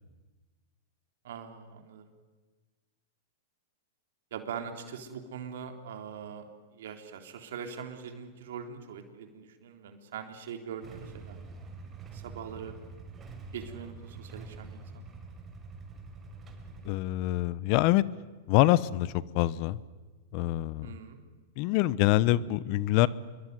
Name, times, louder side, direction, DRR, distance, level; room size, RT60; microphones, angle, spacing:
voice 1, 1.2-2.1 4.3-6.4 6.7-11.4 12.1-12.8 13.5-15.0 20.8-21.2, right 7 dB, 70° right, 6 dB, 3.7 m, -42 dB
Motorcycle / Engine starting / Idling, 10.8-17.0, right 4 dB, 20° right, 5.5 m, -46 dB
voice 2, 16.8-18.0 18.5-19.8 20.3-20.9 21.6-23.1, left 16 dB, 50° left, 19 dB, 1.0 m, -25 dB
26.5 x 23.0 x 9.7 m, 1.3 s
hypercardioid pair, 115°, 0 cm